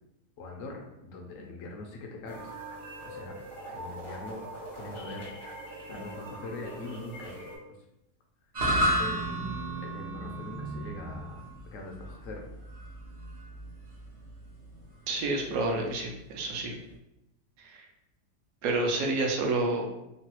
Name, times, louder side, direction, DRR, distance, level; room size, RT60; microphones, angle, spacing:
voice 1, 0.4-2.5 3.0-3.4 3.7-4.4 4.7-5.3 5.9-7.4 9.0-12.4, left 2 dB, 70° left, 1 dB, 0.8 m, -42 dB
sound 1, 2.3-7.6, right 1 dB, 30° left, 0.6 m, -42 dB
sound 2, 8.5-16.9, right 1 dB, 45° right, 0.5 m, -33 dB
voice 2, 15.1-16.7 17.6-17.8 18.6-19.9, right 2 dB, 70° right, 1 dB, 1.0 m, -29 dB
3.1 x 2.2 x 2.9 m, 0.88 s
omnidirectional pair, 1.7 m